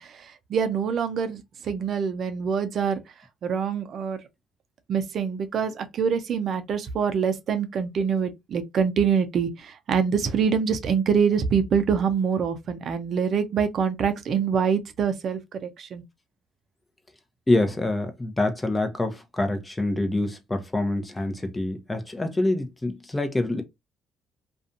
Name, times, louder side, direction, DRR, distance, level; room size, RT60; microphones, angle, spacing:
voice 1, 0.0-3.0 3.4-4.2 4.9-16.0, right 6 dB, 55° right, 0.5 m, -25 dB
voice 2, 17.5-23.6, left 2 dB, 15° left, 0.6 m, -26 dB
2.5 x 2.2 x 2.6 m
supercardioid pair, 75°, 0 cm